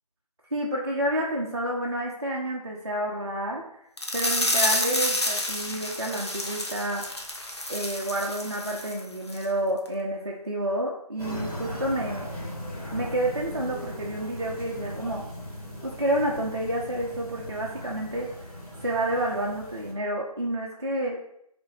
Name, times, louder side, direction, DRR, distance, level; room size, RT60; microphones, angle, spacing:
voice 1, 0.5-3.6 4.1-7.1 7.7-12.3 12.9-15.2 15.8-18.3 18.8-21.2, right 1 dB, 45° right, -3 dB, 0.4 m, -29 dB
sound 1, 4.0-9.0 9.3-9.5 9.9-10.0, left 1 dB, 45° left, 0.5 m, -29 dB
sound 2, 11.2-19.9, equal, 65° left, 1.4 m, -38 dB
5.1 x 2.5 x 2.3 m, 0.73 s
figure-of-eight pair, 165°, 20 cm